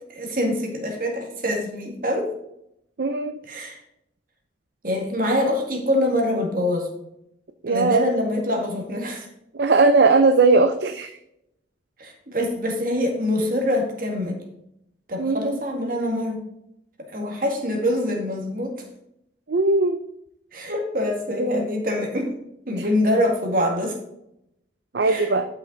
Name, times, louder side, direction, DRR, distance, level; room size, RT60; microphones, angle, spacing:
voice 1, 0.1-2.3 3.5-3.8 4.8-6.9 7.7-9.3 12.0-14.4 15.1-16.4 17.0-18.8 20.5-22.3 22.7-24.0 25.0-25.3, left 1 dB, 50° right, 2 dB, 1.9 m, -24 dB
voice 2, 3.0-3.4 7.6-8.1 9.5-11.1 15.2-15.6 19.5-20.0 22.7-22.8 24.9-25.5, right 3 dB, 65° right, 7 dB, 0.5 m, -19 dB
11.0 x 5.8 x 3.9 m, 0.80 s
head